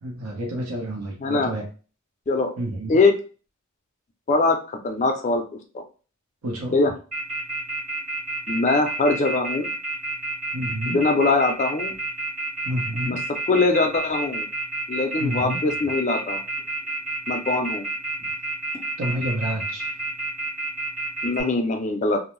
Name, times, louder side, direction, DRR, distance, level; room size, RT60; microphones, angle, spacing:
voice 1, 0.0-1.6 2.6-3.0 6.4-6.8 10.5-11.0 12.6-13.2 15.2-15.6 19.0-19.9, right 1 dB, 85° right, 0 dB, 0.8 m, -29 dB
voice 2, 1.2-1.5 2.3-2.5 2.9-3.1 4.3-5.4 5.7-5.8 6.7-6.9 8.5-9.7 10.9-11.9 13.1-13.2 13.5-14.5 14.9-16.4 17.3-17.9 21.2-22.2, left 3 dB, 30° left, 5 dB, 0.4 m, -22 dB
Telephone, 7.1-21.4, right 2 dB, 35° right, 1.4 m, -29 dB
2.6 x 2.0 x 3.0 m, 0.37 s
head